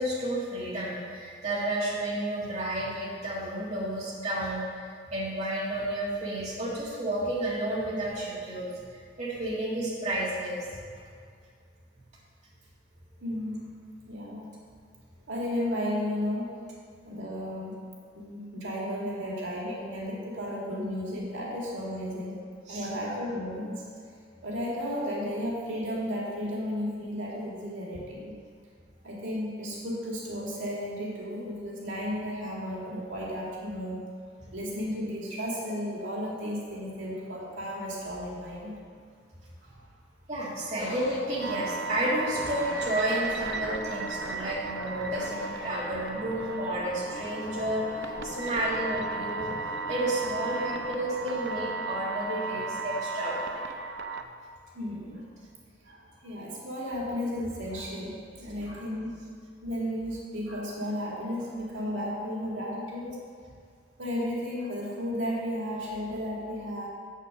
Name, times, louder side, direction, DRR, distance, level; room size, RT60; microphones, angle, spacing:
voice 1, 0.0-8.7 9.2-10.7 22.7-22.9 40.3-53.6, right 1 dB, 35° right, -6 dB, 2.0 m, -31 dB
voice 2, 13.2-13.8 14.1-14.5 15.3-16.6 17.1-17.7 18.1-22.4 22.7-23.8 24.4-28.3 29.0-34.0 34.5-38.8 39.6-39.8 44.6-44.7 48.5-48.6 54.0-54.1 54.7-55.3 55.8-59.2 59.6-63.2 64.0-66.9, equal, 80° right, -4 dB, 2.0 m, -34 dB
sound 1, 40.8-53.8, left 1 dB, 55° left, 1.0 m, -42 dB
sound 2, 41.4-54.2, right 4 dB, 65° right, 0.5 m, -35 dB
7.5 x 6.5 x 6.3 m, 2.2 s
head